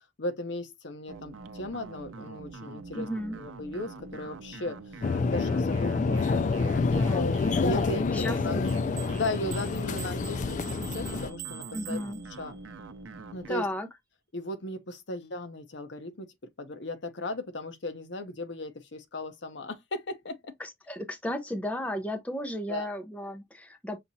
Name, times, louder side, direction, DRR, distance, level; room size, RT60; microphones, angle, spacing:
voice 1, 0.2-3.1 3.3-4.8 5.3-6.8 7.6-8.7 9.1-12.0 12.4-12.6 13.3-13.7 14.3-16.3 16.6-20.6 22.7-22.9, left 1 dB, 65° left, 0.8 m, -36 dB
sound 1, 1.1-13.5, right 3 dB, 85° right, 0.5 m, -44 dB
voice 2, 2.9-3.4 6.9-7.3 8.1-8.6 11.7-12.2 13.5-13.9 20.6-24.0, left 1 dB, 5° left, 0.6 m, -34 dB
sound 2, 5.0-11.3, left 4 dB, 40° left, 0.3 m, -27 dB
sound 3, 8.7-12.7, right 12 dB, 45° right, 0.7 m, -45 dB
5.8 x 2.9 x 2.6 m
head